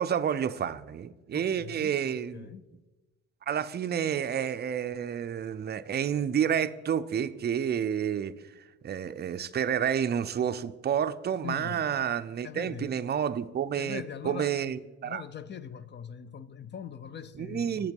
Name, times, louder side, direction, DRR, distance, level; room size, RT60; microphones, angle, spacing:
voice 1, 0.0-2.5 3.4-15.2 17.4-17.9, right 8 dB, 35° right, 0.4 m, -30 dB
voice 2, 1.3-2.7 9.1-9.2 11.4-11.8 12.4-12.9 13.7-14.6 15.0-17.9, left 8 dB, 35° left, 0.5 m, -41 dB
8.0 x 7.3 x 5.3 m
cardioid pair, 90°, 30 cm